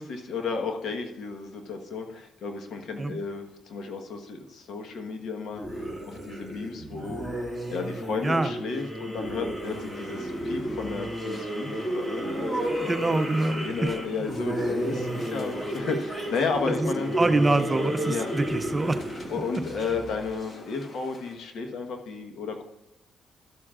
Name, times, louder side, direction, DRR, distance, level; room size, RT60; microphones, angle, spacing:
voice 1, 0.0-7.2 7.7-12.9 13.5-17.1 18.1-18.3 19.3-22.6, left 4 dB, 70° left, 4 dB, 1.3 m, -33 dB
sound 1, 5.5-20.4, right 1 dB, 15° left, 2.3 m, -32 dB
sound 2, 9.6-21.4, left 2 dB, 40° left, 1.4 m, -48 dB
voice 2, 12.8-13.9 16.8-16.9 17.2-19.0, right 2 dB, 20° right, 10 dB, 0.6 m, -25 dB
13.0 x 7.4 x 2.5 m, 0.99 s
cardioid pair, 90°, 0 cm